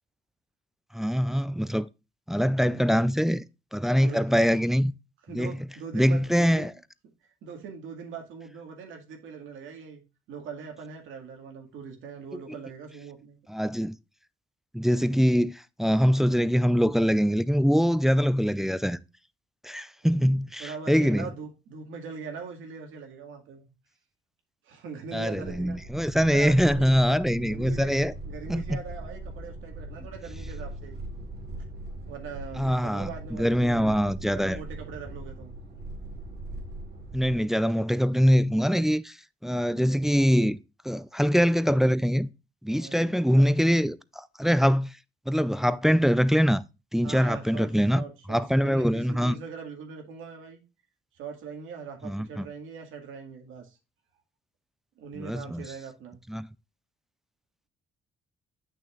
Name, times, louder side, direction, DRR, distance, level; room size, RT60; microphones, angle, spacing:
voice 1, 0.9-1.9 2.3-3.4 3.7-4.9 5.3-5.5 5.9-6.7 13.5-14.0 14.7-19.0 19.6-21.3 25.1-28.1 28.5-28.8 32.6-34.6 37.1-39.2 39.4-40.6 40.8-42.3 42.6-44.9 45.3-46.6 46.9-48.0 48.3-49.4 52.0-52.4 55.2-55.6 56.3-56.5, equal, ahead, 0.4 m, -23 dB
voice 2, 5.3-6.7 7.0-7.1 7.4-10.0 10.3-13.4 20.6-23.7 24.6-25.8 26.3-27.0 27.4-28.0 28.2-31.0 32.1-34.0 34.3-35.5 42.7-43.4 47.0-50.6 51.1-53.8 55.0-56.2, right 5 dB, 85° right, 2.1 m, -41 dB
sound 1, 25.3-37.4, right 1 dB, 60° right, 2.6 m, -40 dB
8.5 x 6.3 x 2.4 m
cardioid pair, 90°, 20 cm